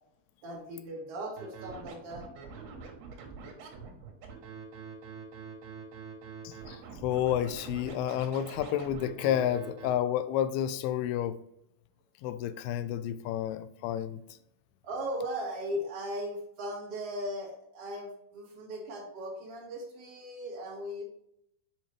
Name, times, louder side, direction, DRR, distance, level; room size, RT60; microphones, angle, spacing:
voice 1, 0.4-2.3 14.8-21.0, equal, 45° right, 2.6 m, -38 dB
Scratching (performance technique), 1.4-9.9, right 5 dB, 85° right, 3.2 m, -45 dB
voice 2, 6.4-11.4 12.2-14.2, left 10 dB, 85° left, 2.4 m, -30 dB
7.1 x 5.2 x 3.3 m
omnidirectional pair, 4.5 m